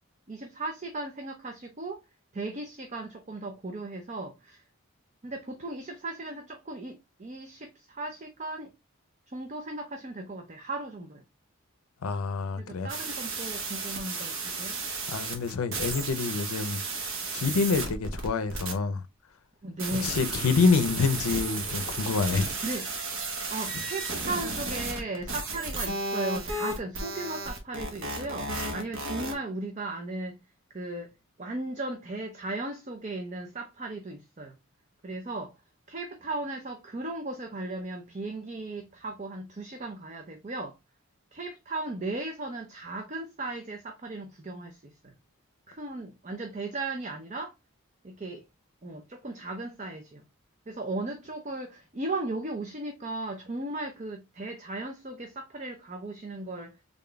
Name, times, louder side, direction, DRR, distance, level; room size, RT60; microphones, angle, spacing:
voice 1, 0.3-2.0 2.3-4.6 5.2-8.7 9.3-11.2 12.6-14.8 19.6-20.2 22.6-22.9 23.5-30.4 30.7-31.1 31.4-34.5 35.0-35.5 35.9-40.7 41.3-45.1 45.7-47.5 48.0-48.4 48.8-50.2 50.7-56.7, right 2 dB, 35° right, 0.5 m, -36 dB
voice 2, 12.0-12.9 15.1-16.8 17.3-19.0 20.0-22.5 23.7-23.8, left 4 dB, 85° left, 0.5 m, -27 dB
sound 1, 12.9-18.7 19.8-29.3, right 3 dB, 65° right, 1.1 m, -33 dB
3.8 x 3.6 x 2.2 m
head